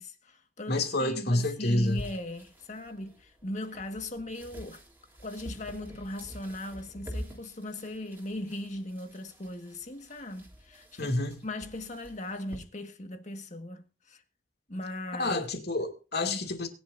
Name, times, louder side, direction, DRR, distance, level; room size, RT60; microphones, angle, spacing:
voice 1, 0.0-4.8 5.2-11.1 11.4-14.2 14.7-15.4 16.2-16.4, left 1 dB, 40° left, 1.7 m, -38 dB
voice 2, 0.7-2.0 11.0-11.4 15.2-16.7, left 2 dB, 55° left, 2.6 m, -28 dB
sound 1, 1.8-12.6, equal, 10° right, 3.3 m, -47 dB
21.5 x 11.0 x 2.7 m
head